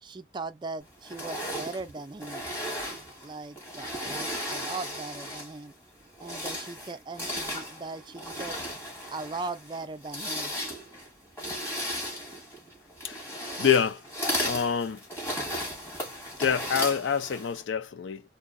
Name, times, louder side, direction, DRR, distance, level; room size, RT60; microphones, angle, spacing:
voice 1, 0.0-2.4 3.2-5.7 6.2-8.6 9.1-10.5, right 3 dB, 25° right, 0.4 m, -39 dB
sound 1, 1.0-5.6 6.1-17.6, equal, 15° left, 1.6 m, -35 dB
voice 2, 13.6-14.0 14.4-15.0 16.4-18.2, left 7 dB, 80° left, 0.5 m, -26 dB
2.9 x 2.7 x 2.5 m
head